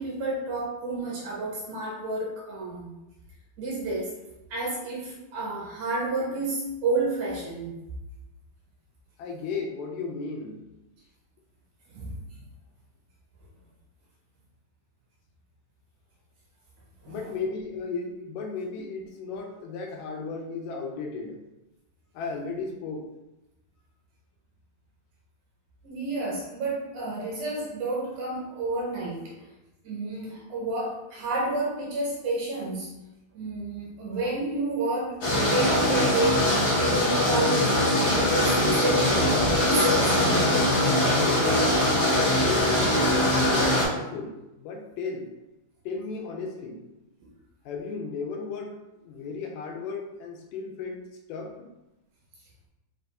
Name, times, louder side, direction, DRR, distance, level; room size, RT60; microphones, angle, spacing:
voice 1, 0.0-2.9 3.6-4.1 4.5-7.8 11.9-12.2 17.0-17.3 25.8-29.2 29.8-32.9 33.3-36.5 36.8-40.6, right 2 dB, 70° right, -4 dB, 2.2 m, -30 dB
voice 2, 9.2-10.7 17.1-21.4 22.2-23.1 42.4-45.3 45.9-46.9 47.7-51.7, left 4 dB, 85° left, 2 dB, 2.1 m, -35 dB
sound 1, 35.2-43.8, left 1 dB, 65° left, 0.9 m, -22 dB
5.1 x 2.5 x 3.4 m, 0.98 s
omnidirectional pair, 3.9 m